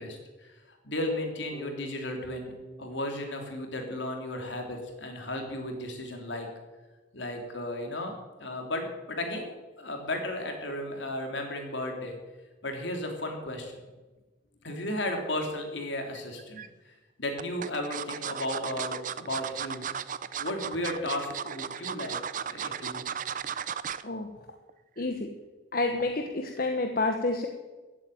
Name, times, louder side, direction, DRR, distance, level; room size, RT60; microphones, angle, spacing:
voice 1, 0.0-2.5 2.8-6.5 7.1-8.1 8.4-9.5 9.8-12.2 12.6-13.7 14.6-19.8 20.4-23.1, left 1 dB, 70° left, 3 dB, 3.3 m, -34 dB
Bass guitar, 1.5-5.5, right 1 dB, 20° right, 2.5 m, -49 dB
sound 1, 16.1-16.7 17.4-24.1 24.5-24.7 25.0-25.1, right 8 dB, 40° right, 0.5 m, -35 dB
voice 2, 25.0-25.3 25.7-27.5, left 2 dB, 50° left, 4 dB, 1.2 m, -29 dB
15.0 x 8.8 x 9.3 m, 1.2 s
head